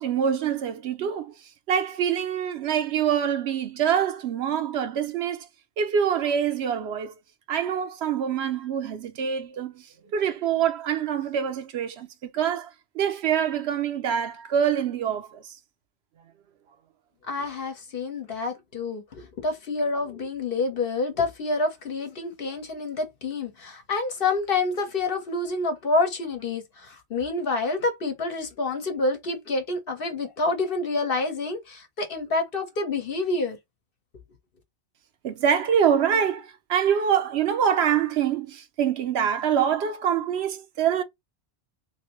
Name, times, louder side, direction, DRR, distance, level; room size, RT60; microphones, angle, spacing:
voice 1, 0.0-1.3 1.7-5.5 5.8-7.1 7.5-15.6 35.2-41.0, right 8 dB, 70° right, 0.8 m, -25 dB
voice 2, 17.3-33.6, left 3 dB, 55° left, 1.1 m, -28 dB
3.2 x 2.6 x 3.0 m
omnidirectional pair, 1.1 m